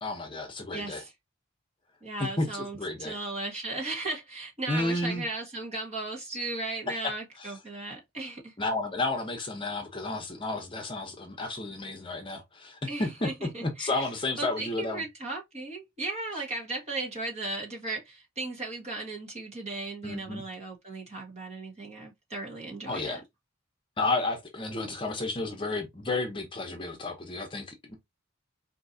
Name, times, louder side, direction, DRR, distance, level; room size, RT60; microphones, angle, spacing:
voice 1, 0.0-1.0 2.4-2.5 2.8-3.1 4.7-5.2 7.0-7.1 7.4-7.5 8.6-13.3 13.6-15.0 20.0-20.4 22.9-23.2 24.0-27.9, left 2 dB, 25° left, 0.8 m, -32 dB
voice 2, 0.7-1.1 2.0-8.5 12.9-14.1 14.4-23.2, right 2 dB, 35° right, 1.5 m, -36 dB
4.5 x 2.8 x 2.6 m
head